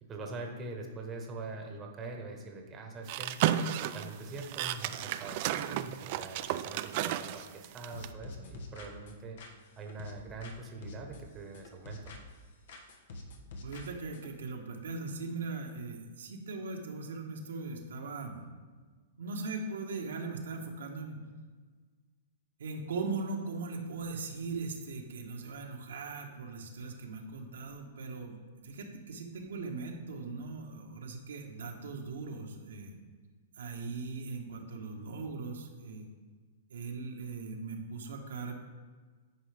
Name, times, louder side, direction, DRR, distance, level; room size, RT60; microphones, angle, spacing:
voice 1, 0.0-3.4 3.8-9.4 9.8-12.2, right 3 dB, 20° right, 2 dB, 1.1 m, -43 dB
sound 1, 3.1-8.1, right 11 dB, 50° right, 0.3 m, -33 dB
sound 2, 7.9-10.6 10.8-12.4 12.7-14.3, left 2 dB, 65° left, 1.0 m, -47 dB
voice 2, 13.6-18.4 19.2-21.2 22.6-33.0 33.6-36.1 36.7-38.5, right 3 dB, 85° right, 1 dB, 1.2 m, -39 dB
9.8 x 4.7 x 3.4 m, 1.5 s
hypercardioid pair, 140°, 0 cm